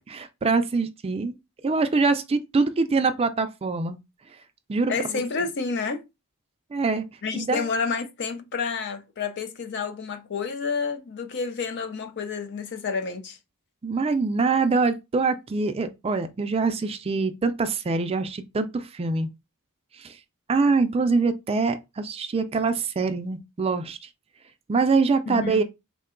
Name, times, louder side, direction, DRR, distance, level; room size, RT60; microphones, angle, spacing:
voice 1, 0.0-1.4 1.6-4.0 4.7-4.9 6.7-7.1 7.3-7.6 13.8-19.3 20.0-20.2 20.5-24.0 24.7-25.6, right 4 dB, 25° right, 0.3 m, -24 dB
voice 2, 4.9-6.0 7.2-13.4 25.3-25.6, left 5 dB, 55° left, 0.5 m, -29 dB
3.6 x 2.2 x 3.6 m
head